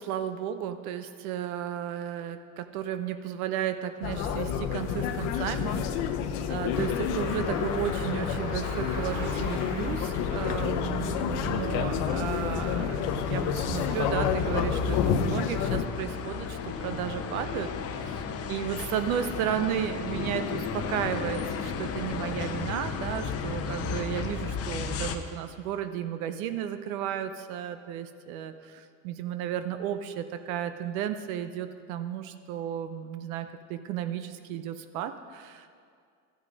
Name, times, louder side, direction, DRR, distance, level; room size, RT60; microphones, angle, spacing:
voice 1, 0.0-5.9 6.5-17.7 17.9-18.2 18.5-35.7, right 10 dB, 80° right, 10 dB, 0.7 m, -33 dB
sound 1, 4.0-15.8, left 8 dB, 65° left, 0.8 m, -29 dB
sound 2, 6.7-25.2, left 5 dB, 35° left, 0.8 m, -35 dB
Car, 7.2-14.6, right 2 dB, 50° right, 2.4 m, -46 dB
13.0 x 6.3 x 5.2 m, 2.2 s
supercardioid pair, 100°, 42 cm